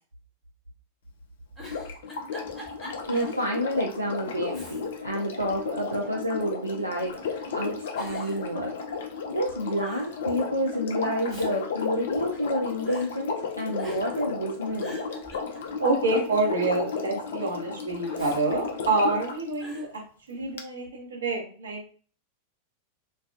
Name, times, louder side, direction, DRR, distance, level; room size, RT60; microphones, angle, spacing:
Giggle, 1.5-3.4 3.8-3.9 4.4-5.1 5.5-6.3 7.0-7.4 8.0-9.2 9.5-9.6 9.8-10.2 11.0-12.5 12.9-13.1 13.8-14.2 14.6-16.0 18.0-19.2 19.6-19.9, equal, 5° left, 1.3 m, -46 dB
Sink (filling or washing), 1.6-19.4 20.6-20.7, left 5 dB, 60° left, 0.4 m, -34 dB
voice 1, 3.1-8.7 9.3-15.0, equal, 90° right, -2 dB, 0.3 m, -29 dB
voice 2, 15.8-20.0 20.3-21.8, right 3 dB, 70° right, 0 dB, 0.7 m, -27 dB
2.3 x 2.2 x 2.4 m, 0.42 s
figure-of-eight pair, 90°, 0 cm